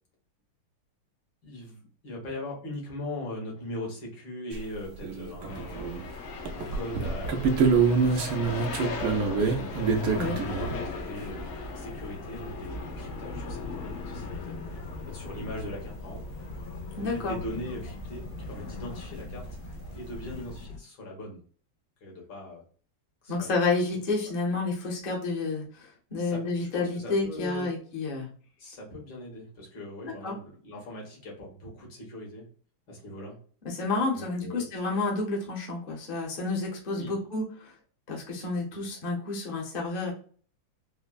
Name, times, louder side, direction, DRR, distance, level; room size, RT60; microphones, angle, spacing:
voice 1, 1.4-5.9 6.5-9.9 10.4-11.5 11.8-14.7 15.1-16.2 17.1-21.4 22.0-22.6 23.2-23.5 26.2-27.7 28.6-32.5 32.9-33.4 34.1-34.7 36.9-37.2 38.7-38.9, left 1 dB, 65° left, -2 dB, 1.9 m, -40 dB
sound 1, 4.5-4.6 5.0-6.1 6.5-10.8 13.4-13.5 13.7-13.8 14.8-14.9 15.5-15.6 19.2-19.3 19.4-19.9, right 5 dB, 80° right, 0.8 m, -26 dB
sound 2, 5.5-20.8, left 4 dB, 90° left, 1.5 m, -38 dB
voice 2, 17.0-17.4 23.3-28.3 30.0-30.4 33.6-37.7 38.1-40.1, left 3 dB, 40° left, -2 dB, 0.7 m, -30 dB
4.2 x 2.1 x 2.3 m, 0.43 s
omnidirectional pair, 2.2 m